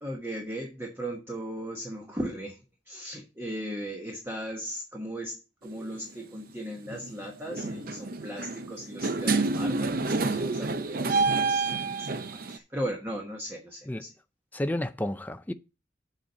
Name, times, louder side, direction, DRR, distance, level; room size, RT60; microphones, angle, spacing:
voice 1, 0.0-2.6 2.9-11.7 12.0-14.1, equal, 15° right, 1.2 m, -37 dB
sound 1, 5.7-5.9 6.9-7.1 7.5-12.6, right 3 dB, 50° right, 0.6 m, -28 dB
voice 2, 14.5-15.5, left 1 dB, 10° left, 0.4 m, -31 dB
7.4 x 4.2 x 6.6 m
head